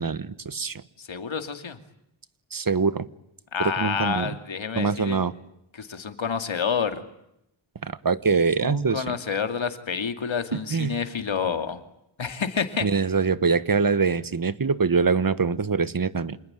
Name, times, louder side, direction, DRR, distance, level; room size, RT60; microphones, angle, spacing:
voice 1, 0.0-0.8 2.5-3.1 3.6-4.3 4.7-5.3 7.8-9.1 10.5-11.0 12.8-16.4, right 5 dB, 45° right, 15 dB, 1.4 m, -24 dB
voice 2, 1.0-1.8 3.5-5.2 5.7-7.0 8.6-11.8 12.2-12.9, left 6 dB, 75° left, 8 dB, 2.6 m, -28 dB
27.5 x 20.5 x 9.2 m, 0.81 s
wide cardioid pair, 60°, 47 cm